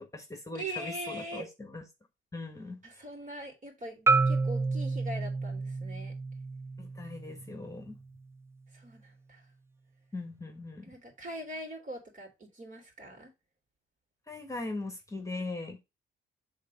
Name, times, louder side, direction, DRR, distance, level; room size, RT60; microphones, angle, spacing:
voice 1, 0.0-1.8 2.3-3.0 6.8-7.9 10.1-10.9 14.3-15.8, left 2 dB, 15° left, 1.5 m, -40 dB
voice 2, 0.5-1.5 2.8-6.1 8.7-9.5 10.8-13.3, equal, 40° right, 3.4 m, -42 dB
Marimba xylophone, 4.1-8.2, right 4 dB, 15° right, 0.6 m, -30 dB
6.7 x 4.0 x 5.1 m
cardioid pair, 90°, 20 cm